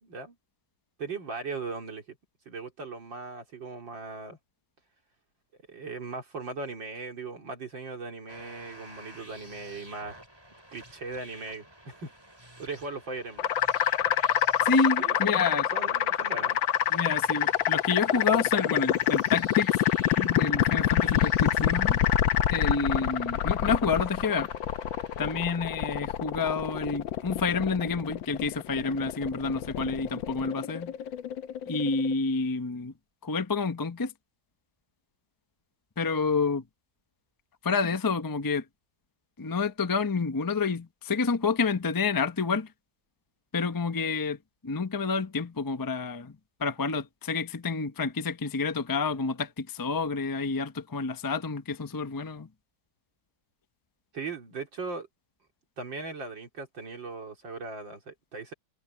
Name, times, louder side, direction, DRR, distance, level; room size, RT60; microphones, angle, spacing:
voice 1, 0.0-0.4 1.0-2.2 2.5-4.4 5.7-10.2 10.7-12.1 12.4-13.5 15.0-16.6 54.1-55.1 55.8-58.5, right 3 dB, 60° right, 3.8 m, -38 dB
sound 1, 8.3-25.6, right 1 dB, 10° right, 6.4 m, -51 dB
sound 2, 13.4-32.1, left 11 dB, 70° left, 1.6 m, -27 dB
voice 2, 14.6-15.7 16.9-19.8 20.2-22.0 22.5-24.5 25.2-30.9 31.7-32.9 33.2-34.1 36.0-36.6 37.6-38.6 39.4-42.7 43.5-52.5, left 4 dB, 35° left, 0.3 m, -29 dB
omnidirectional pair, 2.3 m